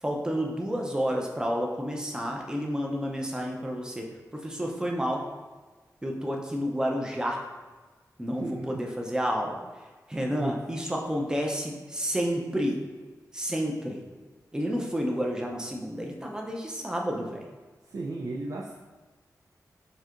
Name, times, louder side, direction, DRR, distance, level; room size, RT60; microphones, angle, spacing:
voice 1, 0.0-5.2 6.0-7.4 8.2-9.6 10.1-12.8 13.3-14.0 14.5-17.4, equal, 10° right, 0 dB, 0.6 m, -30 dB
voice 2, 8.3-8.8 10.4-10.5 17.8-18.7, right 2 dB, 65° right, -2 dB, 0.4 m, -35 dB
7.6 x 2.8 x 2.5 m, 1.3 s
wide cardioid pair, 160°, 6 cm